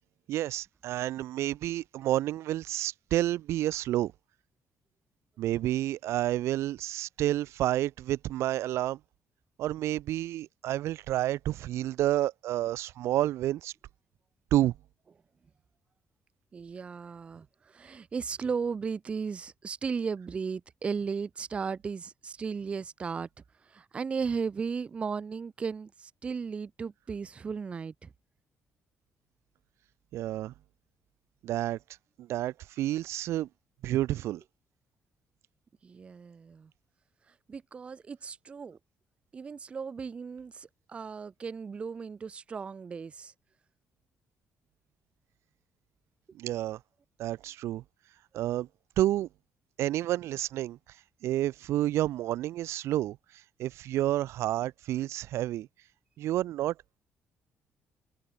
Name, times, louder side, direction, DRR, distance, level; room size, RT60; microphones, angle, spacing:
voice 1, 0.3-4.1 5.4-9.0 9.6-13.7 14.5-14.7 30.1-30.5 31.4-31.8 32.2-33.5 33.8-34.4 46.4-46.8 47.2-47.8 48.3-48.7 49.0-49.3 49.8-50.8 51.2-53.2 53.6-55.7 56.2-56.7, right 14 dB, 80° right, 0.8 m, -29 dB
voice 2, 16.5-23.3 23.6-28.1 35.8-36.7 37.3-38.8 39.3-43.3, right 5 dB, 25° right, 0.5 m, -36 dB
cardioid pair, 165°, 5 cm